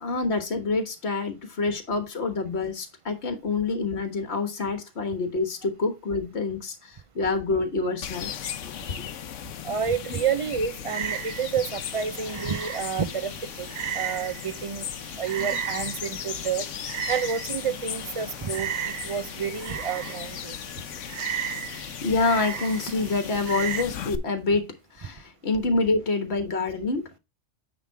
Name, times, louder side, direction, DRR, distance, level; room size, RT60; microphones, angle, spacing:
voice 1, 0.0-8.7 21.7-27.2, left 3 dB, 60° left, 1.7 m, -27 dB
sound 1, 8.0-24.2, left 9 dB, 85° left, 1.1 m, -37 dB
voice 2, 9.6-13.3 13.6-13.7 13.9-14.9 15.2-16.7 17.1-20.6, right 7 dB, 40° right, 0.5 m, -29 dB
Frog, 10.9-23.8, right 9 dB, 75° right, 1.0 m, -36 dB
9.1 x 3.8 x 4.6 m
omnidirectional pair, 1.3 m